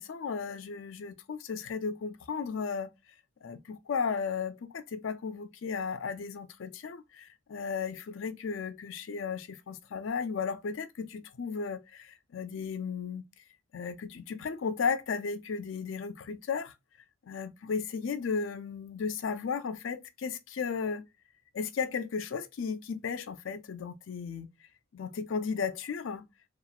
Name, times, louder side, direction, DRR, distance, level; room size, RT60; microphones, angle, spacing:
voice 1, 0.0-2.9 3.4-13.2 13.7-16.7 17.3-21.0 21.5-24.5 24.9-26.3, left 5 dB, 75° left, 0.4 m, -35 dB
2.9 x 2.4 x 2.3 m
head